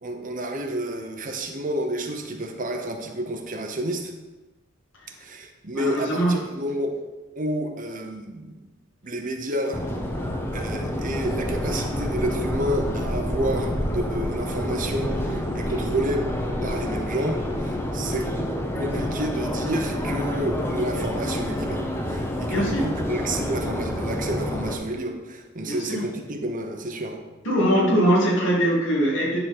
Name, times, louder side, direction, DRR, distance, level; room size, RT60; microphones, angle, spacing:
voice 1, 0.0-4.1 5.2-7.0 7.4-8.6 9.0-9.8 10.5-16.3 16.6-18.3 18.8-27.2, right 1 dB, 40° right, 4 dB, 0.9 m, -30 dB
voice 2, 5.7-6.4 22.5-22.9 25.6-26.1 27.4-29.4, equal, 70° left, -3 dB, 2.3 m, -22 dB
Subway metro underground, 9.7-24.7, left 1 dB, 10° left, 0.8 m, -28 dB
10.5 x 3.9 x 6.1 m, 1.1 s
head